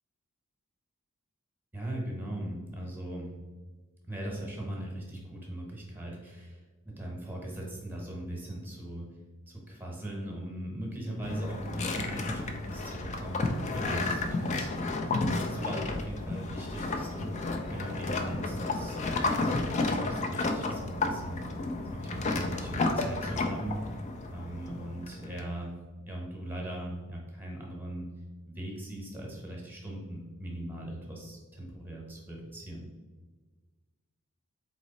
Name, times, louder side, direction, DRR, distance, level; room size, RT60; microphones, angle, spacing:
voice 1, 1.7-3.3 4.0-9.1 9.5-21.4 21.9-25.7 26.1-28.1 28.5-32.9, right 1 dB, 10° right, -2 dB, 1.0 m, -39 dB
sound 1, 11.2-25.4, left 3 dB, 30° left, 0.4 m, -32 dB
4.0 x 3.0 x 4.1 m, 1.3 s
head